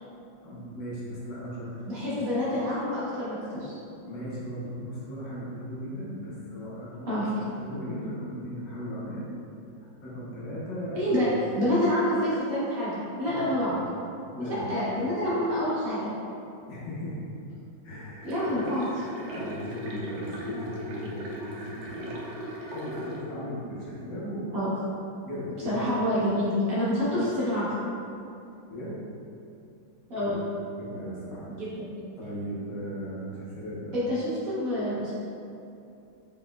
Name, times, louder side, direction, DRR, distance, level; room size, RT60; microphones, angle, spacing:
voice 1, 0.4-2.3 4.1-9.3 10.0-11.3 13.3-13.9 14.3-14.8 15.3-15.4 16.7-17.2 17.8-18.6 19.3-22.2 22.7-24.5 25.2-26.0 27.1-27.3 28.7-29.0 30.2-30.4 30.8-31.5 32.2-34.0, equal, 70° left, -7 dB, 1.5 m, -37 dB
voice 2, 1.9-3.7 7.1-7.3 10.9-11.3 11.5-13.8 14.7-16.1 18.2-18.9 24.5-24.7 25.7-27.7 30.1-30.4 31.5-31.9 33.9-35.1, left 1 dB, 55° right, -9 dB, 1.2 m, -27 dB
sound 1, 18.2-23.2, equal, 80° right, 1.4 m, -38 dB
4.1 x 4.0 x 2.2 m, 2.6 s
omnidirectional pair, 2.1 m